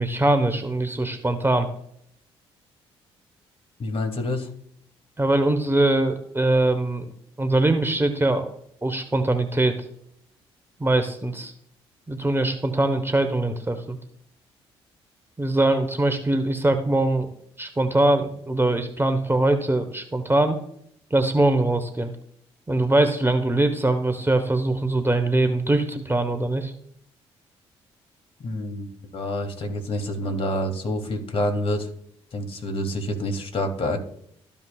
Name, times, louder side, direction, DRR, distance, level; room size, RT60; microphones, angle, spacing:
voice 1, 0.0-1.7 5.2-7.1 7.4-8.5 8.8-9.8 10.8-11.5 12.1-14.0 15.4-17.3 17.6-20.6 21.1-22.1 22.7-26.7, right 2 dB, 15° right, 8 dB, 1.2 m, -22 dB
voice 2, 3.8-4.5 28.4-31.9 32.3-34.0, left 1 dB, 45° left, 5 dB, 2.0 m, -27 dB
13.5 x 5.5 x 2.4 m, 0.69 s
hypercardioid pair, 45°, 14 cm